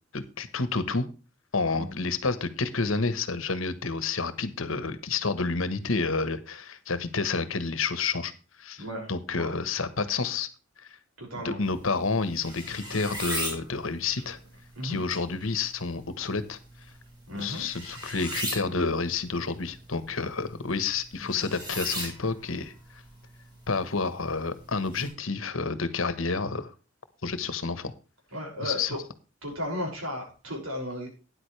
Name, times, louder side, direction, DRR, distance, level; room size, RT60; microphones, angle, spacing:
voice 1, 0.1-1.1 1.5-8.3 8.6-8.8 9.1-10.5 11.3-14.4 14.8-16.6 17.3-22.7 23.7-26.7 27.2-27.9 28.6-29.0, left 4 dB, 70° left, 13 dB, 1.2 m, -29 dB
voice 2, 8.8-9.5 11.2-11.6 14.7-15.0 17.3-17.6 21.2-21.5 28.3-29.0 29.4-31.1, left 1 dB, 85° right, 1 dB, 6.0 m, -35 dB
sound 1, 11.6-25.1, right 1 dB, 20° right, 5.0 m, -40 dB
13.0 x 9.8 x 3.3 m, 0.33 s
head